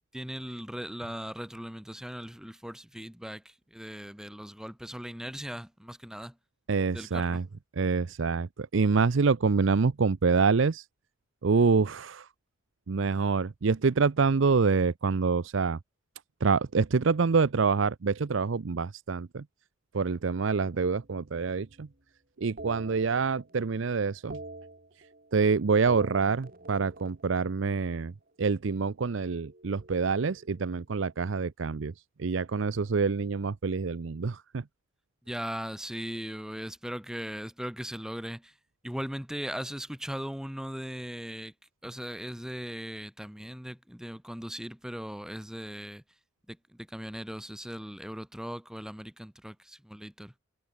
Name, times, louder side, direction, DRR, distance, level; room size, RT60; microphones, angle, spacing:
voice 1, 0.1-6.4 6.9-7.4 35.3-38.5 38.8-41.5 41.8-46.0 46.5-50.3, equal, 5° right, 1.3 m, -39 dB
voice 2, 6.7-7.4 7.8-10.8 11.4-12.3 12.9-15.8 16.4-19.4 19.9-21.9 22.4-24.4 25.3-28.1 28.4-31.9 32.2-34.6, right 4 dB, 65° right, 0.6 m, -26 dB
sound 1, 20.7-22.0 22.6-23.7 24.0-25.4 25.7-28.1 29.3-31.0, right 2 dB, 45° right, 5.1 m, -47 dB
head